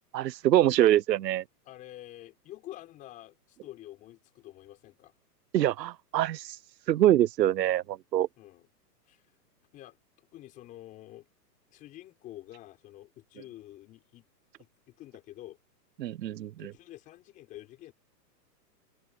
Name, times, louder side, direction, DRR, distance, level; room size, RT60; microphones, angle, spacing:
voice 1, 0.1-1.4 5.5-6.6 6.9-8.3 16.0-16.7, right 12 dB, 75° right, 0.9 m, -24 dB
voice 2, 1.7-5.1 8.4-8.7 9.0-9.3 9.7-11.3 11.7-14.3 14.6-15.6 16.6-17.9, left 14 dB, 15° left, 5.4 m, -48 dB
hypercardioid pair, 180°, 50 cm